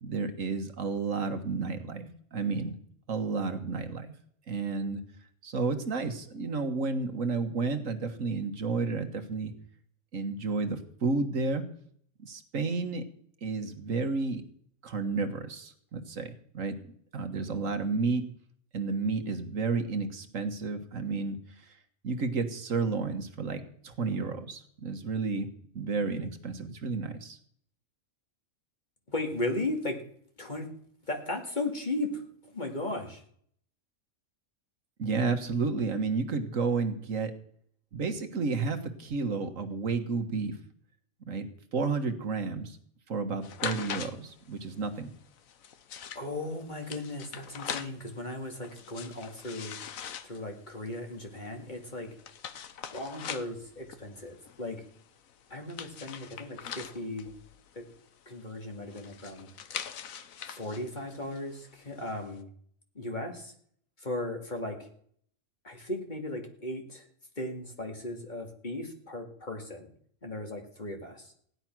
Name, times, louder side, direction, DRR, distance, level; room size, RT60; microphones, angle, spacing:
voice 1, 0.0-2.7 3.1-4.1 4.5-5.0 5.4-9.5 10.1-11.7 12.2-13.0 13.4-14.4 14.8-16.8 17.1-18.2 18.7-21.7 22.0-25.5 25.8-27.4 35.0-37.3 37.9-40.6 41.3-42.8 43.1-45.1, right 4 dB, 75° right, 7 dB, 1.8 m, -31 dB
voice 2, 29.1-30.0 30.4-30.7 31.1-33.2 46.1-49.7 50.2-52.1 52.9-54.8 55.5-57.3 57.7-57.8 58.3-59.5 60.4-62.5 62.9-63.5 64.0-64.9 65.6-67.0 67.4-69.9 70.2-71.3, left 2 dB, 35° left, 3 dB, 2.5 m, -36 dB
sound 1, 43.4-62.4, left 8 dB, 85° left, 1.3 m, -43 dB
16.0 x 11.0 x 6.1 m, 0.63 s
omnidirectional pair, 1.4 m